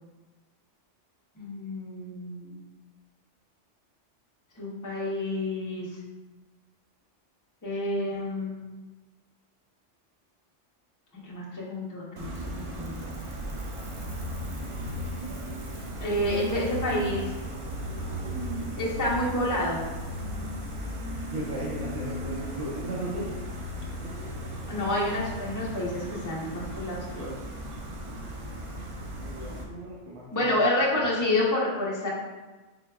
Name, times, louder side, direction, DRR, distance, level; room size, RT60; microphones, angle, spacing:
voice 1, 1.4-2.6 4.6-6.0 7.6-8.5 11.2-13.0 16.0-17.2 18.8-19.8 24.7-27.3 30.3-32.1, left 1 dB, 20° left, -5 dB, 0.6 m, -29 dB
Gull seagull, 12.2-29.6, equal, 55° right, 0.3 m, -36 dB
voice 2, 21.3-23.4 23.7-24.3 28.1-30.5 30.9-31.1, right 1 dB, 75° right, -4 dB, 1.0 m, -38 dB
3.9 x 3.5 x 2.3 m, 1.2 s
omnidirectional pair, 1.2 m